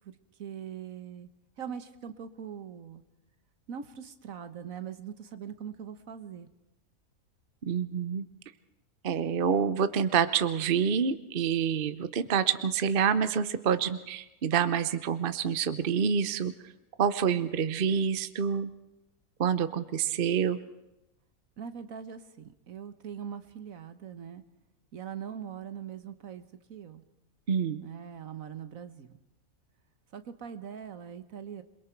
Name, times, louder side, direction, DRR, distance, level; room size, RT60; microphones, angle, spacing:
voice 1, 0.4-1.3 1.6-3.0 3.7-6.5 21.6-24.4 24.9-27.0 27.8-29.1 30.1-31.6, right 8 dB, 65° right, 11 dB, 1.5 m, -41 dB
voice 2, 7.6-8.3 9.0-16.5 17.0-18.7 19.4-20.6 27.5-27.8, right 7 dB, 45° right, 12 dB, 0.9 m, -27 dB
28.0 x 22.5 x 4.6 m, 0.94 s
omnidirectional pair, 1.5 m